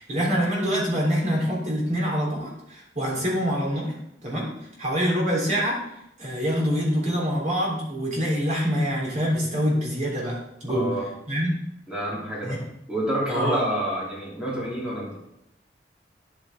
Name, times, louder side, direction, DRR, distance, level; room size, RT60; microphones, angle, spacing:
voice 1, 0.0-3.9 4.2-4.5 4.8-5.8 6.2-10.9 11.3-11.6 12.4-12.6 13.3-13.6, equal, 45° right, -3 dB, 3.6 m, -25 dB
voice 2, 10.7-11.1 11.9-12.6 12.9-15.2, right 1 dB, 5° right, -6 dB, 3.1 m, -28 dB
9.7 x 8.4 x 3.6 m, 0.80 s
head